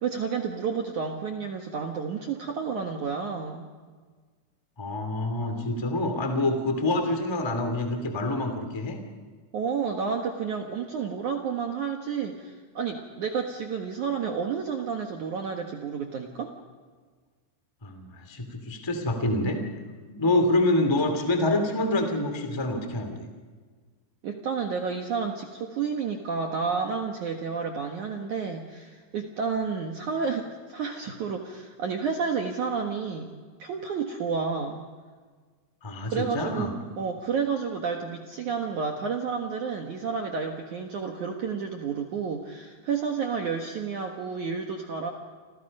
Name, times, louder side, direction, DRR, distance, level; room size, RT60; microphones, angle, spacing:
voice 1, 0.0-3.7 9.5-16.5 24.2-33.3 33.6-34.8 36.1-36.7 37.0-45.1, right 5 dB, 70° right, 3 dB, 1.8 m, -30 dB
voice 2, 4.8-9.0 17.8-19.6 20.1-23.3 35.8-36.7, left 2 dB, 15° left, 5 dB, 1.0 m, -26 dB
30.0 x 26.5 x 5.5 m, 1.5 s
omnidirectional pair, 5.6 m